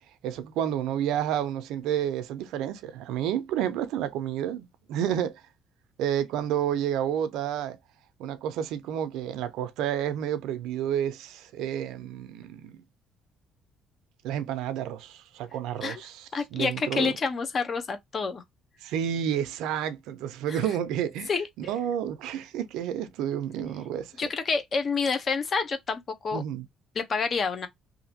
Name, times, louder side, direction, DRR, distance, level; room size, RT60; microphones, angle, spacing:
voice 1, 0.2-5.4 6.0-7.8 8.2-12.8 14.2-17.1 18.8-21.3 21.6-24.2 26.3-26.6, right 10 dB, 85° right, 0.5 m, -30 dB
voice 2, 16.3-18.4 20.5-20.6 21.3-21.5 24.2-26.4 26.9-27.7, left 5 dB, 40° left, 0.8 m, -28 dB
2.8 x 2.6 x 2.7 m
cardioid pair, 100°, 0 cm